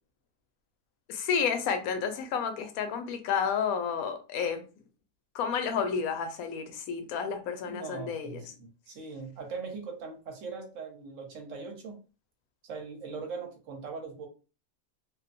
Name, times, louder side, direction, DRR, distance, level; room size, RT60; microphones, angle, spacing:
voice 1, 1.1-4.6 5.3-8.4, left 6 dB, 75° left, 1.0 m, -31 dB
voice 2, 7.7-12.0 12.7-14.3, right 4 dB, 65° right, 1.0 m, -40 dB
2.6 x 2.1 x 2.5 m
omnidirectional pair, 1.6 m